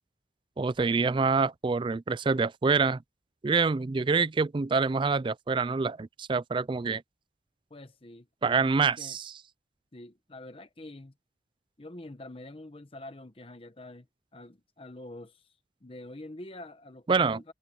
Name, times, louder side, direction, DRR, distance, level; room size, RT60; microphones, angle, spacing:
voice 1, 0.6-3.0 3.4-7.0 8.4-9.3 17.1-17.4, right 4 dB, 25° right, 0.3 m, -26 dB
voice 2, 7.7-8.3 8.8-9.2 9.9-11.1 11.8-14.1 14.3-15.5 15.8-17.5, left 1 dB, 30° left, 1.0 m, -46 dB
head